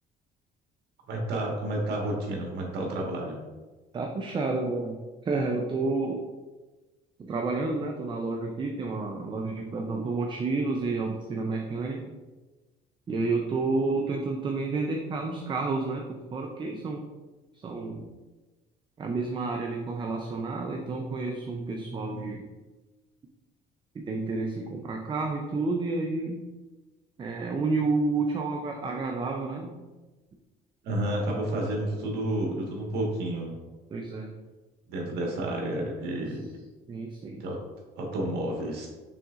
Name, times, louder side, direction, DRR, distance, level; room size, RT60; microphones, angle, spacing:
voice 1, 1.1-3.4 30.8-33.5 34.9-36.4 37.4-37.6 38.0-38.9, right 1 dB, 75° right, -1 dB, 1.4 m, -30 dB
voice 2, 3.9-5.0 5.2-6.2 7.2-12.1 13.1-17.0 17.5-18.1 19.0-22.4 23.9-26.4 27.2-29.8 33.9-34.3 36.9-37.4, right 3 dB, 30° right, 2 dB, 0.5 m, -30 dB
5.8 x 3.7 x 2.4 m, 1.2 s
cardioid pair, 110°, 17 cm